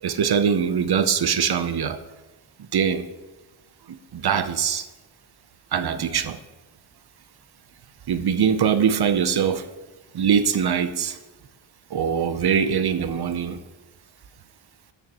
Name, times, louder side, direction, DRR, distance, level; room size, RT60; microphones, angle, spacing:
voice 1, 0.0-2.0 2.6-3.1 3.9-4.9 5.7-6.4 8.1-9.7 10.1-11.2 11.9-13.6, right 7 dB, 55° right, 11 dB, 0.7 m, -22 dB
13.0 x 6.4 x 3.0 m, 1.1 s
wide cardioid pair, 105°, 47 cm